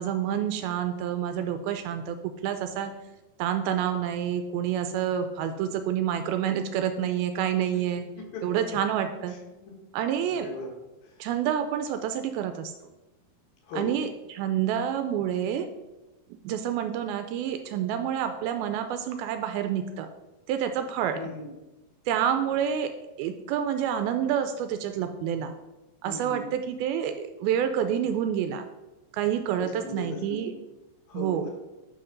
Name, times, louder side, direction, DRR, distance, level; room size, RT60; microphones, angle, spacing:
voice 1, 0.0-2.2 2.4-2.9 3.4-8.1 8.4-9.4 9.9-10.5 11.2-12.7 13.8-15.7 16.4-20.1 20.5-21.3 22.1-22.9 23.2-25.5 26.0-28.6 29.1-30.5 31.1-31.5, right 9 dB, 80° right, 8 dB, 2.3 m, -28 dB
voice 2, 7.7-8.5 9.3-9.7 10.3-10.7 11.0-11.1 13.6-14.0 21.1-21.5 22.5-22.6 26.1-26.5 29.6-30.4 31.1-31.5, left 2 dB, 70° left, 0 dB, 3.1 m, -38 dB
9.9 x 3.7 x 5.2 m, 1.0 s
omnidirectional pair, 4.6 m